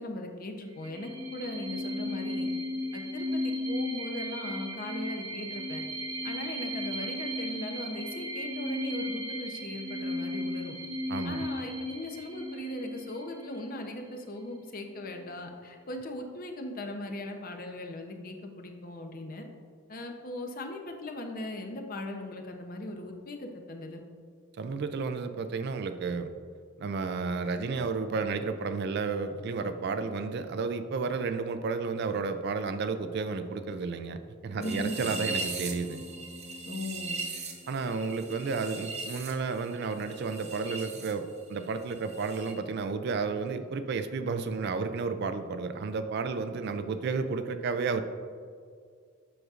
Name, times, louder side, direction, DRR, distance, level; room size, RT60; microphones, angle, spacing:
voice 1, 0.0-2.5 2.9-5.8 6.2-10.8 11.2-19.5 19.9-24.0 34.6-35.0 36.6-37.2, left 1 dB, 40° left, 4 dB, 0.6 m, -39 dB
sound 1, 0.7-14.1, left 1 dB, 75° right, 1.0 m, -35 dB
voice 2, 11.1-11.5 24.6-26.3 26.8-36.0 37.7-48.0, right 4 dB, 50° right, 10 dB, 0.3 m, -32 dB
sound 2, 34.6-41.1 41.4-42.5, right 3 dB, 30° right, 0.7 m, -39 dB
7.8 x 6.2 x 2.4 m, 2.2 s
head